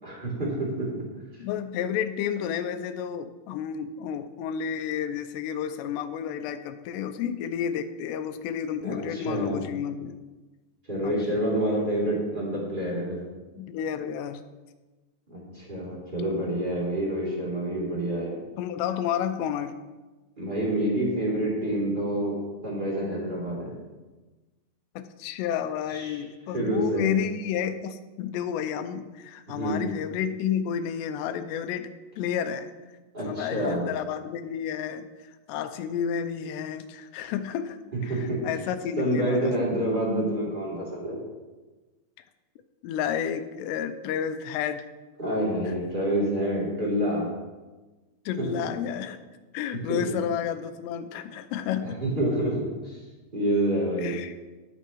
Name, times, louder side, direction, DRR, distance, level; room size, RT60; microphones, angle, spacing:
voice 1, 0.0-1.0 8.8-9.7 10.9-13.2 15.3-18.4 20.4-22.4 22.6-23.7 25.9-26.2 26.5-27.1 29.5-29.9 33.1-33.8 38.1-38.4 39.0-41.2 45.2-47.3 48.4-48.5 49.9-50.0 51.8-53.0 53.3-54.1, right 1 dB, 15° right, -6 dB, 2.1 m, -27 dB
voice 2, 1.4-10.2 11.0-11.4 13.6-14.4 18.6-19.8 25.0-31.9 32.2-32.7 33.2-39.5 42.8-44.9 45.7-45.8 48.3-49.2 49.5-52.0 54.0-54.3, left 8 dB, 80° left, 9 dB, 2.6 m, -31 dB
15.5 x 7.0 x 3.1 m, 1.2 s
omnidirectional pair, 5.2 m